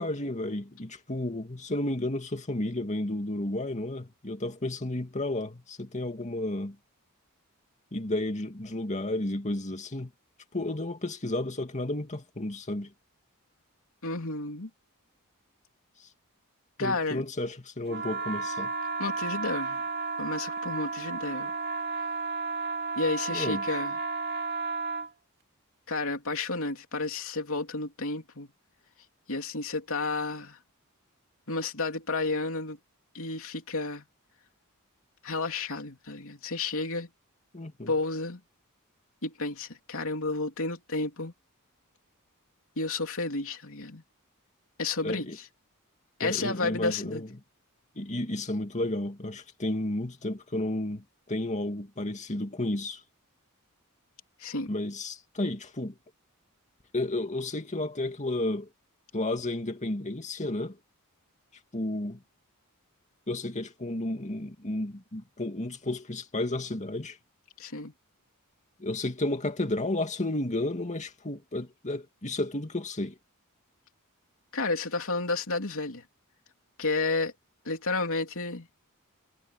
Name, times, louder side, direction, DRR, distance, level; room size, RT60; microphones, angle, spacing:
voice 1, 0.0-6.8 7.9-10.1 10.5-12.9 16.0-16.1 16.8-18.7 23.3-23.6 37.5-37.9 45.0-45.4 46.2-47.4 48.0-53.0 54.7-56.0 56.9-58.7 59.1-60.8 61.7-62.2 63.3-67.2 68.8-73.2, left 1 dB, 35° left, 2.3 m, -32 dB
voice 2, 14.0-14.7 16.8-17.2 19.0-19.8 20.2-21.5 23.0-23.9 25.9-28.5 29.3-30.6 31.5-32.8 33.1-34.0 35.2-37.1 37.9-38.4 39.2-41.3 42.8-44.0 44.8-45.3 46.2-47.2 54.4-54.7 67.6-67.9 74.5-76.0 76.8-77.3 77.6-78.7, left 3 dB, 65° left, 3.4 m, -31 dB
sound 1, 17.9-25.1, right 4 dB, 45° right, 2.6 m, -33 dB
head